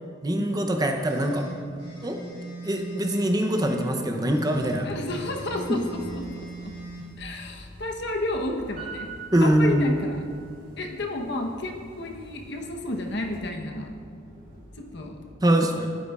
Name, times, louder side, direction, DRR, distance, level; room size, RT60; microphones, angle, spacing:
voice 1, 0.2-1.5 2.0-2.2 2.6-4.9 5.7-5.8 9.3-9.9 15.4-15.9, right 1 dB, 20° right, 3 dB, 0.6 m, -23 dB
sound 1, 1.0-3.8 4.2-7.1, right 1 dB, 25° left, 1.9 m, -39 dB
sound 2, 4.5-15.3, left 1 dB, 75° right, 2.5 m, -47 dB
voice 2, 4.8-5.8 6.1-6.7 7.2-9.1 9.4-10.2 10.8-13.9 14.9-15.2 15.6-15.8, left 2 dB, 60° left, 2 dB, 0.9 m, -31 dB
Piano, 8.8-10.5 10.9-11.0, right 6 dB, 50° right, 1.7 m, -41 dB
15.5 x 8.1 x 2.4 m, 2.2 s
head